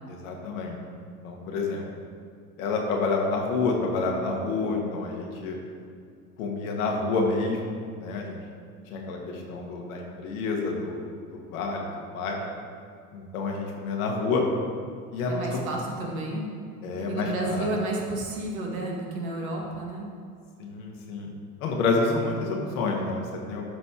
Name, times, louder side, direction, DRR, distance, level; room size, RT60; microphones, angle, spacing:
voice 1, 0.1-0.8 1.2-1.9 2.6-5.6 6.4-8.4 8.9-11.0 11.3-12.4 13.1-14.4 15.1-15.6 16.8-17.7 20.6-21.3 21.6-23.7, left 3 dB, 65° left, 0 dB, 1.8 m, -28 dB
voice 2, 15.3-16.5 17.1-20.1, right 2 dB, 65° right, -1 dB, 1.9 m, -31 dB
12.5 x 4.2 x 4.8 m, 2.2 s
figure-of-eight pair, 75°, 45 cm